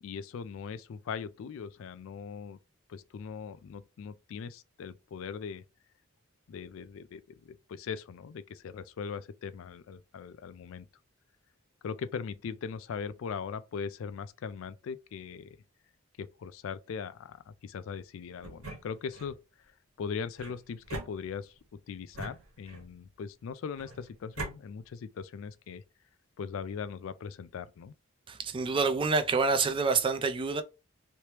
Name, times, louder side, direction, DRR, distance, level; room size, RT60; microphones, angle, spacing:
voice 1, 0.0-2.6 2.9-5.6 6.5-10.9 11.8-15.6 16.2-19.4 20.0-25.8 26.4-27.9, left 6 dB, 65° left, 0.3 m, -40 dB
sound 1, 18.4-19.4 20.4-21.6 22.1-23.0 23.8-24.6, right 2 dB, 75° right, 1.4 m, -42 dB
voice 2, 28.3-30.6, right 4 dB, 25° right, 0.3 m, -27 dB
3.2 x 3.0 x 2.9 m
head